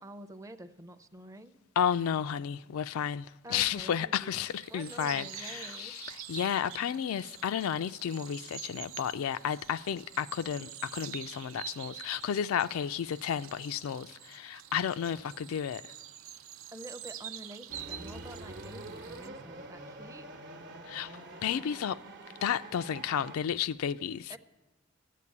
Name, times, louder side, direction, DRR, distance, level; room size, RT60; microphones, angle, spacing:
voice 1, 0.0-1.6 3.4-6.0 16.7-20.3 24.3-24.4, right 1 dB, 15° right, 0.5 m, -48 dB
voice 2, 1.8-15.9 20.9-22.0 22.4-24.4, left 8 dB, 90° left, 0.3 m, -32 dB
sound 1, 4.4-19.3, right 10 dB, 75° right, 0.5 m, -47 dB
sound 2, 17.7-23.4, right 2 dB, 60° right, 1.0 m, -46 dB
13.0 x 8.3 x 8.4 m
head